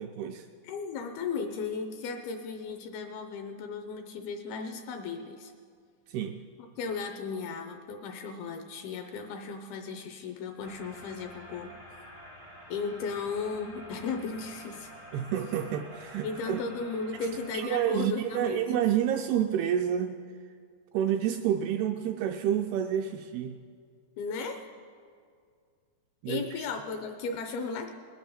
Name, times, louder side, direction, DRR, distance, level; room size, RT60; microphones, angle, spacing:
voice 1, 0.0-0.5 6.1-6.4 15.1-16.6 17.5-20.2 20.9-23.6 26.2-26.4, right 10 dB, 85° right, 4 dB, 2.3 m, -29 dB
voice 2, 0.6-5.5 6.8-11.7 12.7-14.9 16.2-18.6 24.2-24.6 26.3-27.9, left 5 dB, 75° left, 6 dB, 2.4 m, -35 dB
sound 1, 10.6-17.6, equal, 45° left, 0.5 m, -48 dB
20.5 x 7.1 x 6.8 m, 2.2 s
omnidirectional pair, 4.9 m